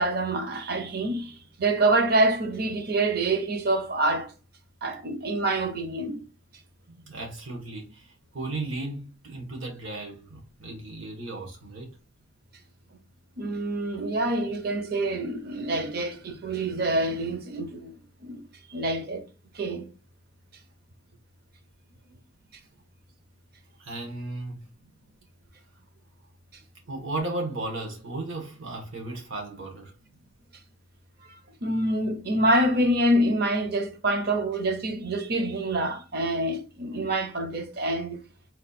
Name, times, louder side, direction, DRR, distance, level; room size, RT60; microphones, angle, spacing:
voice 1, 0.0-4.3 4.8-6.2 13.4-17.9 18.2-18.4 18.7-19.2 19.5-19.9 31.6-38.2, right 1 dB, 50° right, 0.7 m, -26 dB
voice 2, 6.9-11.9 22.1-22.2 23.8-24.7 26.9-29.9, right 2 dB, 85° right, 1.3 m, -35 dB
4.2 x 2.4 x 4.2 m
head